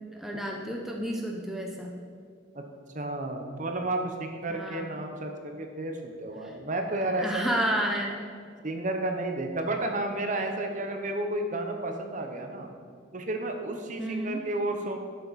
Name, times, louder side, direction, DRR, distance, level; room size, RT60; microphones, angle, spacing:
voice 1, 0.0-1.9 4.5-5.0 6.4-6.5 7.1-8.2 14.0-14.4, equal, ahead, -1 dB, 0.7 m, -31 dB
voice 2, 2.9-7.5 8.6-12.7 13.1-15.0, right 2 dB, 40° right, 4 dB, 0.9 m, -32 dB
11.5 x 6.8 x 4.1 m, 2.1 s
head